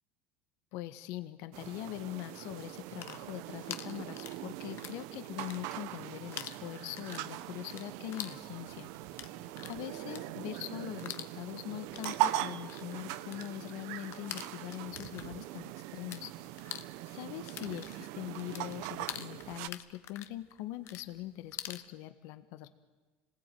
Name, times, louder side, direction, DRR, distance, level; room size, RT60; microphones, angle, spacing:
voice 1, 0.7-8.9 9.7-16.3 17.0-22.7, left 15 dB, 70° left, 10 dB, 1.5 m, -42 dB
sound 1, 1.5-19.7, right 13 dB, 70° right, 0.9 m, -40 dB
sound 2, 2.8-5.0 5.3-6.0 6.3-16.2 16.5-21.9, left 12 dB, 55° left, 1.2 m, -46 dB
27.0 x 20.0 x 9.3 m, 1.3 s
supercardioid pair, 115°, 5 cm